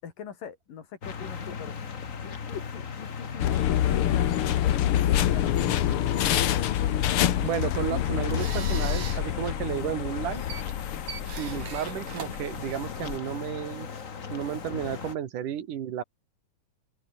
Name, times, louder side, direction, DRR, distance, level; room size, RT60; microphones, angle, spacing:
voice 1, 0.0-1.7 2.2-4.8 5.1-6.0 6.5-7.1, left 7 dB, 85° left, 4.6 m, -43 dB
sound 1, 1.0-15.2, left 6 dB, 40° left, 1.1 m, -38 dB
sound 2, 3.4-13.2, left 11 dB, 65° left, 1.4 m, -27 dB
voice 2, 7.4-10.4 11.4-13.9 14.3-16.0, right 10 dB, 75° right, 3.3 m, -32 dB
sound 3, 7.5-13.2, right 7 dB, 55° right, 4.2 m, -42 dB
open air
omnidirectional pair, 3.8 m